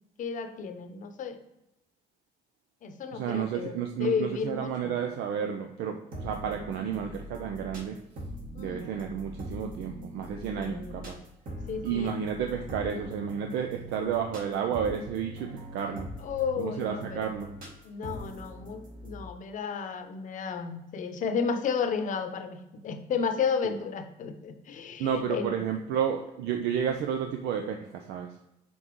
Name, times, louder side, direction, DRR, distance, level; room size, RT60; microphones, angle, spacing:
voice 1, 0.2-1.4 2.8-4.9 8.5-8.9 10.6-11.0 11.7-12.1 16.2-17.3 17.8-25.6, left 6 dB, 50° left, 7 dB, 0.8 m, -32 dB
voice 2, 3.1-8.0 8.6-11.2 11.8-16.1 16.6-17.5 25.0-28.3, right 8 dB, 80° right, 4 dB, 0.6 m, -31 dB
sound 1, 6.1-19.2, equal, 55° right, 2.1 m, -42 dB
6.1 x 3.9 x 4.5 m, 0.90 s
cardioid pair, 110°, 17 cm